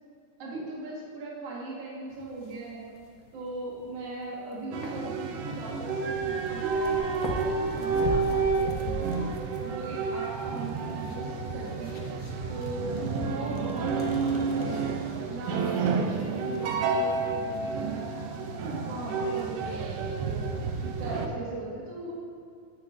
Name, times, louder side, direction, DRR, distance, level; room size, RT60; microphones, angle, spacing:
voice 1, 0.4-2.9 3.3-9.1 9.6-12.0 12.5-14.8 15.1-20.5 20.8-22.1, right 2 dB, 55° right, -5 dB, 2.5 m, -39 dB
sound 1, 2.1-17.4, left 2 dB, 85° left, 2.4 m, -42 dB
sound 2, 4.7-21.3, right 4 dB, 80° right, 1.4 m, -30 dB
10.0 x 9.6 x 2.6 m, 2.4 s
omnidirectional pair, 3.6 m